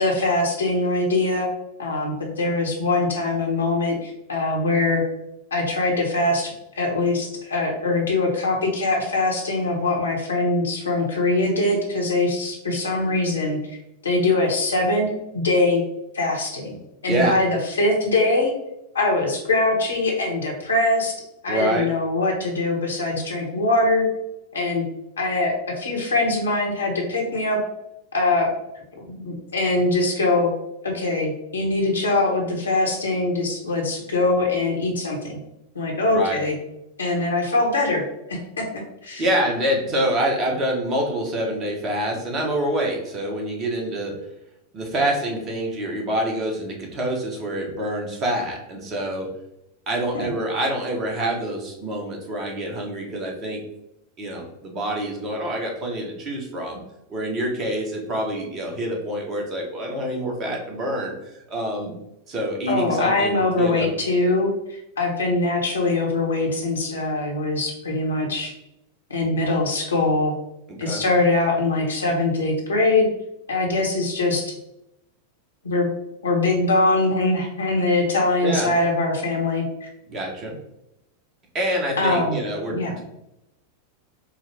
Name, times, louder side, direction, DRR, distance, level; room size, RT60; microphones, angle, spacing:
voice 1, 0.0-1.5 1.8-5.0 5.5-13.6 14.0-15.8 16.1-16.8 17.0-18.5 18.9-21.1 21.4-24.1 24.5-24.8 25.2-27.6 28.1-28.5 28.9-30.5 30.8-35.4 35.7-36.6 37.0-38.4 39.0-39.2 50.1-50.3 62.7-68.5 69.1-70.3 70.8-73.1 73.5-74.5 75.6-75.9 76.2-79.9 82.0-82.4 82.7-82.9, left 2 dB, 70° left, 0 dB, 1.0 m, -22 dB
voice 2, 21.5-21.9 36.1-36.4 39.2-44.1 44.7-49.3 49.9-53.6 54.2-56.8 57.1-61.1 61.5-61.9 62.3-63.9 70.7-71.0 78.4-78.7 80.1-80.5 81.5-83.1, right 1 dB, 30° right, 1 dB, 1.0 m, -26 dB
4.7 x 2.0 x 3.4 m, 0.84 s
figure-of-eight pair, 90°, 0 cm